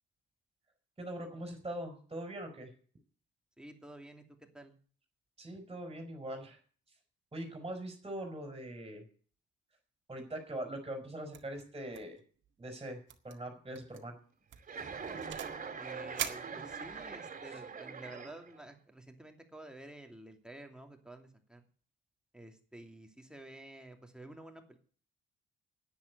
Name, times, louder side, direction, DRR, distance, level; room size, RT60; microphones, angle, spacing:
voice 1, 1.0-2.7 5.4-6.6 7.3-9.0 10.1-12.2 12.6-14.2, right 1 dB, 25° right, 3 dB, 4.4 m, -42 dB
voice 2, 3.6-4.2 4.5-4.7 15.8-21.6 22.3-24.8, right 1 dB, 5° right, 4 dB, 2.8 m, -51 dB
sound 1, 11.3-11.6 11.9-12.2 12.4-12.5 13.1-13.3 13.7-14.0 14.5-15.6 16.2-17.1, right 10 dB, 70° right, 1.9 m, -42 dB
Chuckle chortle, 14.6-18.7, right 5 dB, 40° right, 3.0 m, -43 dB
10.5 x 9.5 x 8.1 m, 0.43 s
cardioid pair, 90°, 20 cm